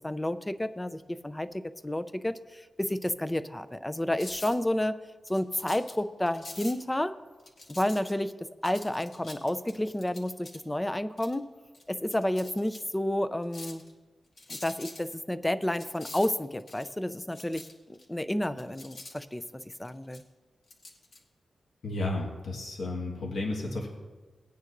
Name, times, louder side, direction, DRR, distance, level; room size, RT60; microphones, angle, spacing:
voice 1, 0.0-5.0 5.3-7.2 7.7-11.5 11.9-13.8 14.5-20.2, left 1 dB, 10° left, 12 dB, 0.5 m, -31 dB
sound 1, 4.1-4.6 5.3-5.9 6.3-6.7 7.4-8.3 8.6-10.6 11.2-11.3 11.7-11.8 12.1-12.8 13.4-13.9 14.4-15.0 15.8-16.9 17.3-18.0 18.5-20.2 20.7-21.2, left 2 dB, 60° left, 2.1 m, -45 dB
voice 2, 21.8-23.9, left 2 dB, 80° left, -1 dB, 1.7 m, -32 dB
19.5 x 9.4 x 2.6 m, 1.3 s
wide cardioid pair, 95°, 0 cm